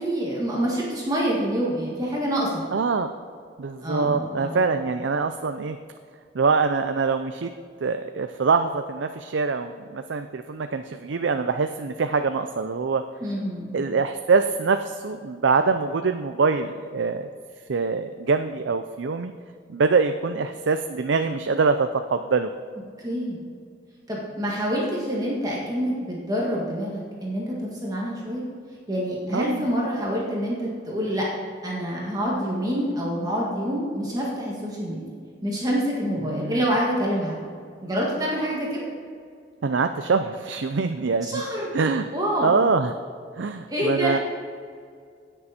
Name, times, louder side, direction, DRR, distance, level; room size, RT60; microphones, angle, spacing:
voice 1, 0.0-2.6 3.8-4.6 13.2-13.8 23.0-23.4 24.1-28.4 28.9-31.3 31.6-35.0 35.4-37.4 37.8-38.9 41.2-41.7 42.1-42.6 43.7-44.2, equal, 20° right, -4 dB, 1.8 m, -27 dB
voice 2, 2.7-3.1 3.6-5.8 6.3-7.5 7.8-13.0 13.7-17.3 17.7-19.3 19.7-22.5 29.3-29.7 36.2-36.6 39.6-41.4 41.7-42.1 42.4-42.9 43.4-44.2, right 4 dB, 80° right, 8 dB, 0.5 m, -24 dB
17.5 x 6.9 x 4.3 m, 2.2 s
head